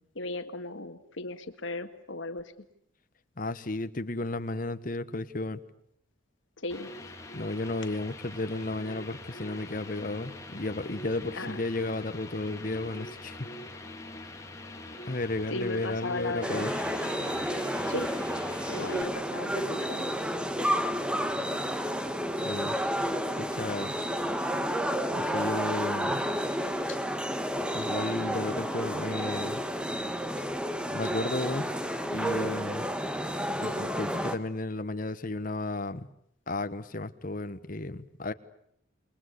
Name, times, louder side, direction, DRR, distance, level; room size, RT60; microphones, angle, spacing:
voice 1, 0.2-2.5 6.6-6.9 11.3-11.6 15.5-16.7 17.9-18.1 18.7-20.1 26.9-27.0, left 2 dB, 75° left, 7 dB, 1.8 m, -36 dB
voice 2, 3.4-5.6 7.3-13.5 15.1-16.7 22.4-22.8 23.5-24.0 25.1-26.2 27.7-29.6 30.9-31.7 32.1-32.9 33.6-36.1 36.5-38.3, left 2 dB, 45° left, 10 dB, 1.2 m, -33 dB
sound 1, 6.7-19.0, left 1 dB, 15° left, 2.6 m, -43 dB
sound 2, 16.4-34.4, equal, 5° right, 1.3 m, -31 dB
28.5 x 21.5 x 8.3 m, 0.71 s
head